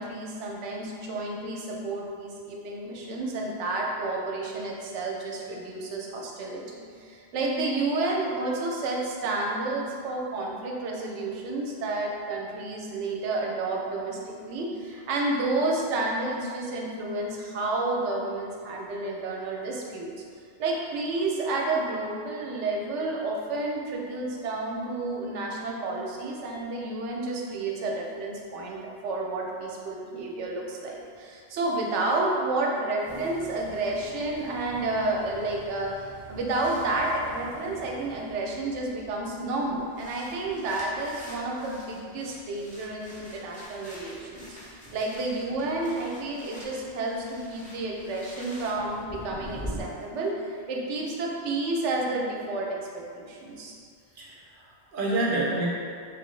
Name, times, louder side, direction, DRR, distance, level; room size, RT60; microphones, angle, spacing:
voice 1, 0.0-20.1 20.6-28.8 29.0-52.7 52.9-53.7, right 2 dB, 85° right, -1 dB, 0.9 m, -30 dB
sound 1, 33.0-49.8, equal, 15° left, 0.3 m, -45 dB
voice 2, 54.2-55.7, right 2 dB, 55° right, -4 dB, 0.7 m, -28 dB
3.0 x 2.6 x 3.1 m, 2.3 s
omnidirectional pair, 1.2 m